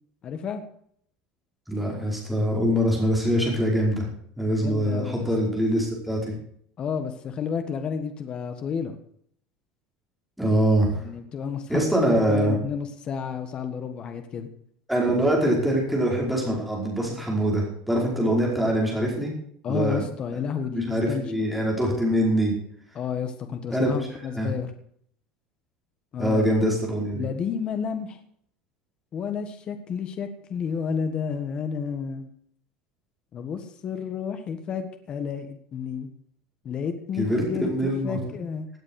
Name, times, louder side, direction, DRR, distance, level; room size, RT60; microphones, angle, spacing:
voice 1, 0.2-0.6 4.6-5.3 6.8-8.9 11.0-14.5 19.6-21.5 22.9-24.7 26.1-26.5 27.2-28.2 29.1-32.3 33.3-36.1 36.6-38.7, left 6 dB, 25° left, 8 dB, 1.6 m, -31 dB
voice 2, 1.7-4.1 4.4-6.3 10.4-11.0 11.7-12.6 14.9-19.3 19.7-20.0 20.7-22.5 23.7-23.9 24.3-24.5 26.2-27.3 37.2-37.4 37.7-38.2, equal, ahead, -3 dB, 5.2 m, -23 dB
17.5 x 8.8 x 6.5 m, 0.64 s
cardioid pair, 175°, 4 cm